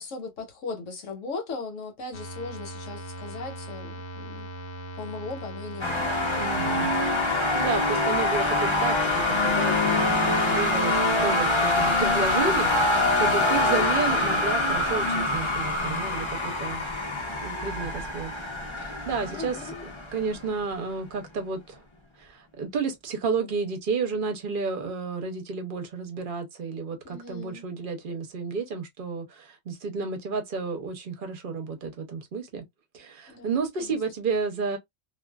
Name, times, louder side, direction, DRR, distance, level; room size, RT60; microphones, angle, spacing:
voice 1, 0.0-4.5 5.0-6.1 13.4-14.0 19.2-19.8 27.0-27.6 33.3-33.9, left 3 dB, 75° left, 1.2 m, -38 dB
sound 1, 2.1-8.6, right 2 dB, 60° left, 0.9 m, -40 dB
sound 2, 5.8-20.6, left 2 dB, 30° left, 0.6 m, -25 dB
voice 2, 6.4-6.9 7.5-12.9 13.2-16.8 17.4-18.3 18.8-21.8 22.2-32.6 32.9-34.8, right 4 dB, 50° right, 0.7 m, -31 dB
2.5 x 2.4 x 2.2 m
omnidirectional pair, 1.3 m